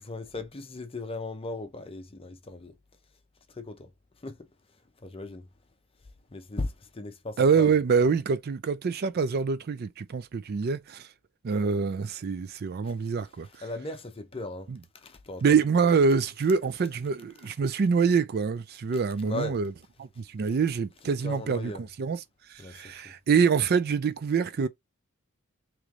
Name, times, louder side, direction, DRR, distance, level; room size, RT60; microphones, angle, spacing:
voice 1, 0.0-2.8 3.5-3.9 4.2-4.5 5.0-5.5 6.3-7.7 12.8-12.9 13.6-15.4 17.5-17.6 19.2-19.6 21.2-21.9 22.6-23.1, left 2 dB, 25° left, 0.7 m, -37 dB
voice 2, 7.4-11.1 11.4-13.5 14.7-14.8 15.4-19.7 20.0-22.2 22.5-24.7, right 5 dB, 50° right, 0.4 m, -25 dB
3.1 x 3.1 x 3.6 m
head